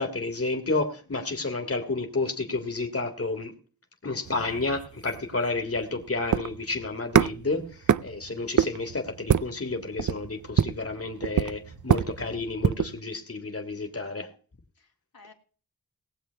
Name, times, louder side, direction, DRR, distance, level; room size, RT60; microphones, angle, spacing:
voice 1, 0.0-3.5 4.0-14.3, left 3 dB, 40° left, 4 dB, 1.9 m, -31 dB
sound 1, 4.3-13.0, right 8 dB, 55° right, 0.5 m, -27 dB
voice 2, 14.8-15.3, left 3 dB, 75° left, 1 dB, 2.4 m, -52 dB
19.0 x 7.5 x 4.5 m, 0.40 s
wide cardioid pair, 40°, 36 cm